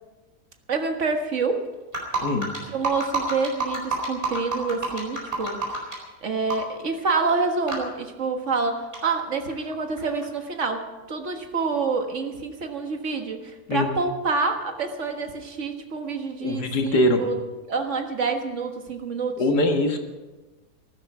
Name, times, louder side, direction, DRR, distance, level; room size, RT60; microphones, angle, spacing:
voice 1, 0.7-1.7 2.7-5.9 6.2-17.4 17.7-19.4, right 4 dB, 50° right, 5 dB, 1.8 m, -27 dB
sound 1, 1.9-6.0 6.5-6.7 7.0-7.3 7.7-7.8 8.5-8.6 8.9-10.3, right 3 dB, 35° right, 4.5 m, -28 dB
voice 2, 16.4-17.2 19.4-20.0, left 1 dB, 85° left, 4 dB, 2.3 m, -22 dB
15.0 x 13.0 x 6.0 m, 1.2 s
omnidirectional pair, 1.7 m